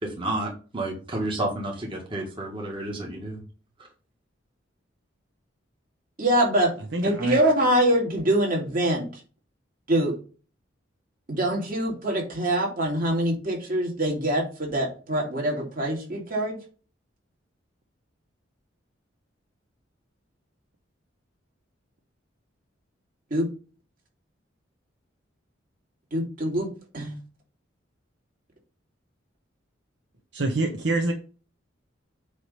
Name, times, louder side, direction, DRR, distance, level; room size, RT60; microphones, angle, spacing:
voice 1, 0.0-3.4, right 1 dB, 25° right, 0 dB, 1.6 m, -31 dB
voice 2, 6.2-6.7 7.0-9.1 9.9-10.1 11.3-16.6 23.3-23.5 26.1-26.7 26.9-27.1, right 1 dB, 45° right, -1 dB, 2.6 m, -24 dB
voice 3, 6.8-7.4 30.3-31.1, right 2 dB, 65° right, 3 dB, 1.0 m, -26 dB
8.3 x 3.2 x 5.5 m, 0.36 s
head